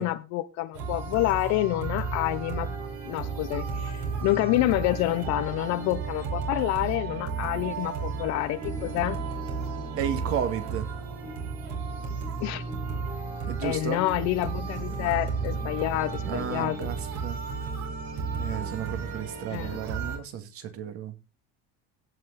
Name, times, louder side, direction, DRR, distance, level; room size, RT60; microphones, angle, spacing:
voice 1, 0.0-2.7 3.0-9.2 12.4-12.6 13.6-16.9 19.5-19.8, left 17 dB, 60° left, 0.8 m, -28 dB
sound 1, 0.7-20.2, right 5 dB, 65° right, 5.3 m, -33 dB
sound 2, 8.6-17.5 18.3-19.6, left 1 dB, ahead, 1.6 m, -45 dB
voice 2, 10.0-10.9 13.5-14.0 16.3-17.4 18.4-21.2, right 8 dB, 45° right, 2.3 m, -33 dB
16.5 x 6.2 x 4.1 m
cardioid pair, 140°, 31 cm